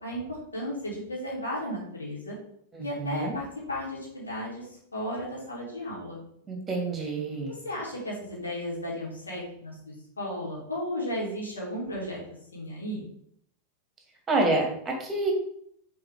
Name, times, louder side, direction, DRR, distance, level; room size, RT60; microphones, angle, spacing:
voice 1, 0.0-2.3 2.8-6.2 7.6-12.2 12.5-13.0, left 1 dB, 75° left, -4 dB, 2.7 m, -34 dB
voice 2, 2.7-3.4 6.5-7.5 14.3-15.3, right 2 dB, 15° right, 1 dB, 2.0 m, -28 dB
6.3 x 4.0 x 4.8 m, 0.69 s
figure-of-eight pair, 90°, 0 cm